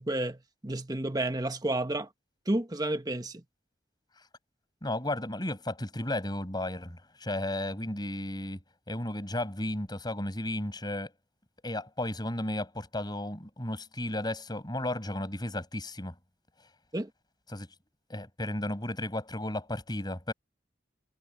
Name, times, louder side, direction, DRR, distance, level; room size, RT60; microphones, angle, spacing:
voice 1, 0.0-2.1 2.5-3.4 16.9-17.1, right 1 dB, 20° right, 1.3 m, -31 dB
voice 2, 4.8-8.6 8.9-11.1 11.6-16.1 17.5-17.7 18.1-20.3, left 1 dB, 25° left, 5.8 m, -34 dB
head